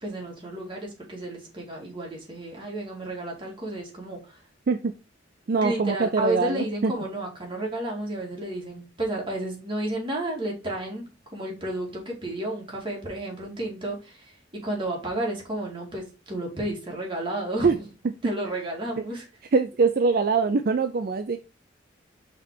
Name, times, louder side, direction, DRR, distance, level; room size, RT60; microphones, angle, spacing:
voice 1, 0.0-4.4 5.5-17.8 18.2-19.2, right 1 dB, 25° right, -1 dB, 2.2 m, -32 dB
voice 2, 5.5-6.9 17.6-17.8 19.0-19.1 19.5-21.4, right 4 dB, 55° right, 9 dB, 0.4 m, -23 dB
5.6 x 3.7 x 4.7 m, 0.30 s
head